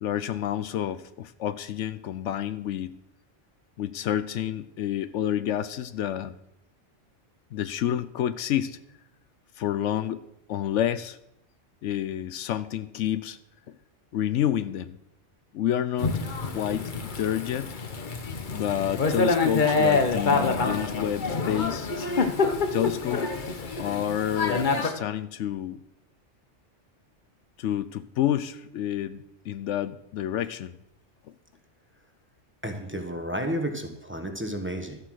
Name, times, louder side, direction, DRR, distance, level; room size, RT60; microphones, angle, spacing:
voice 1, 0.0-2.9 3.8-6.3 7.5-8.8 9.6-10.2 10.5-11.2 11.8-13.4 13.7-13.8 14.1-15.0 15.5-16.2 16.5-17.7 18.4-21.9 22.7-23.3 23.8-25.8 27.6-30.8, left 10 dB, 75° left, 14 dB, 0.9 m, -29 dB
Thunder / Rain, 16.0-24.9, left 4 dB, 45° left, 1.1 m, -26 dB
voice 2, 32.6-35.0, equal, 10° right, 4 dB, 1.2 m, -32 dB
12.5 x 7.8 x 6.3 m, 0.82 s
omnidirectional pair, 1.3 m